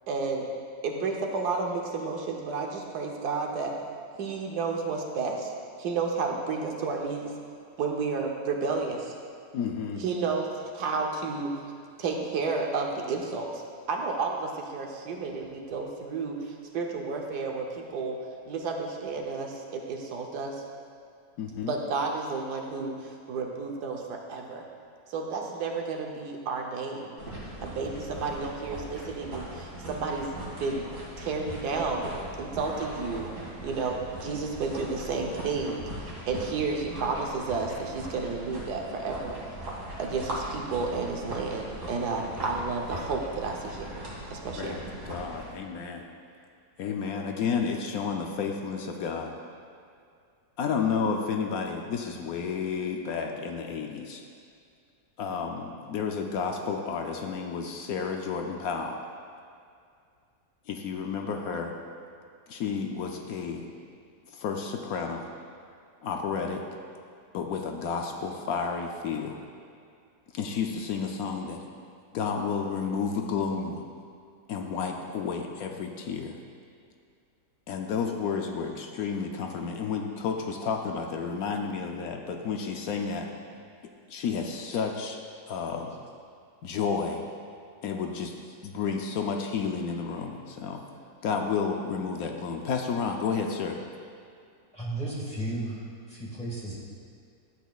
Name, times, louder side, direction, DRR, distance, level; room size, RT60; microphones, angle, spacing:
voice 1, 0.1-0.5 0.8-3.7 4.2-5.5 5.8-7.3 7.8-9.1 10.0-10.5 10.7-11.6 12.0-13.6 13.9-18.2 18.5-20.6 21.7-24.6 25.1-27.1 27.6-30.3 30.6-30.9 31.2-32.1 32.4-33.3 33.6-39.4 40.0-43.9 44.3-44.7, right 4 dB, 80° right, 1 dB, 1.4 m, -31 dB
voice 2, 9.5-10.0 21.4-21.7 44.6-46.1 46.8-49.3 50.6-54.2 55.2-59.0 60.7-61.7 62.5-63.7 64.3-65.3 66.0-66.6 67.3-69.4 70.3-71.6 72.1-73.8 74.5-76.4 77.7-83.3 84.1-85.2 85.5-86.0 86.6-87.2 87.8-88.3 88.6-90.8 91.2-93.8, left 5 dB, 70° left, 3 dB, 1.0 m, -31 dB
sound 1, 27.2-45.5, right 1 dB, 60° right, 2.4 m, -40 dB
voice 3, 94.7-95.8 96.1-96.8, right 2 dB, 5° left, -5 dB, 1.5 m, -34 dB
12.0 x 8.2 x 2.3 m, 2.3 s
omnidirectional pair, 1.7 m